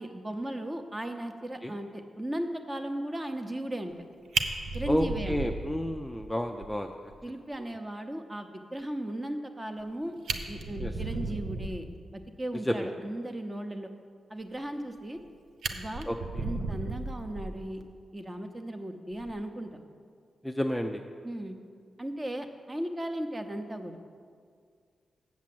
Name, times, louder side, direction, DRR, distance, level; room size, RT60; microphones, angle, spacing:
voice 1, 0.0-3.9 4.7-5.4 7.2-11.9 12.1-13.9 14.3-15.2 15.7-16.1 16.4-17.8 18.1-19.8 21.2-21.6 22.0-24.0, right 1 dB, 15° right, 7 dB, 0.7 m, -36 dB
Fire, 3.9-4.0 4.3-6.3 6.6-6.7 7.1-7.2 7.5-7.6 9.8-9.9 10.2-11.9 14.7-15.3 15.6-17.8 19.1-19.3, right 3 dB, 80° right, 0.6 m, -34 dB
voice 2, 4.9-6.9 10.8-10.9 12.7-12.9 16.1-16.4 20.4-21.0, equal, 5° left, 3 dB, 0.4 m, -30 dB
7.3 x 7.3 x 7.7 m, 2.1 s
wide cardioid pair, 125°, 0 cm